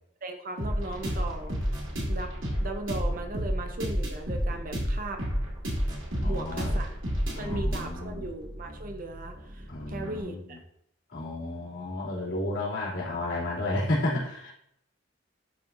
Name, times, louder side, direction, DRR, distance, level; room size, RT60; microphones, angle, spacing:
voice 1, 0.2-1.6 2.1-2.3 2.6-5.2 6.2-7.0 7.4-10.6, right 2 dB, 45° right, 5 dB, 0.7 m, -37 dB
sound 1, 0.6-10.2, equal, 80° right, 2.1 m, -31 dB
voice 2, 6.1-6.8 7.4-8.2 9.7-10.4 11.1-14.5, left 1 dB, 65° left, -7 dB, 2.8 m, -32 dB
11.5 x 4.1 x 2.6 m, 0.74 s
head